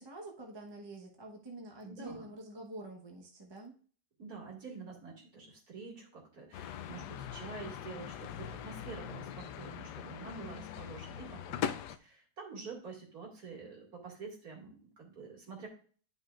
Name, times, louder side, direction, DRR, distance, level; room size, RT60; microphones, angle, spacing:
voice 1, 0.0-3.7 10.2-10.9, right 1 dB, 20° right, 0 dB, 0.9 m, -47 dB
voice 2, 1.8-2.3 4.2-15.7, right 4 dB, 60° right, -1 dB, 2.7 m, -47 dB
sound 1, 6.5-12.0, left 9 dB, 85° left, 1.2 m, -41 dB
10.5 x 5.5 x 2.4 m, 0.43 s
omnidirectional pair, 1.7 m